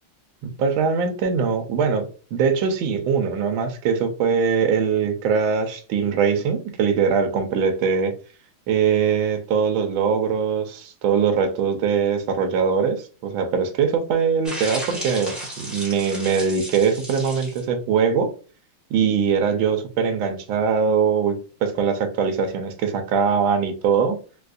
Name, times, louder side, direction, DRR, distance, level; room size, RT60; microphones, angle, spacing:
voice 1, 0.6-8.1 8.7-18.3 18.9-21.3 21.6-24.2, right 6 dB, 80° right, 6 dB, 1.4 m, -22 dB
sound 1, 14.4-17.6, equal, ahead, 0.9 m, -34 dB
4.1 x 2.5 x 2.3 m, 0.36 s
omnidirectional pair, 2.3 m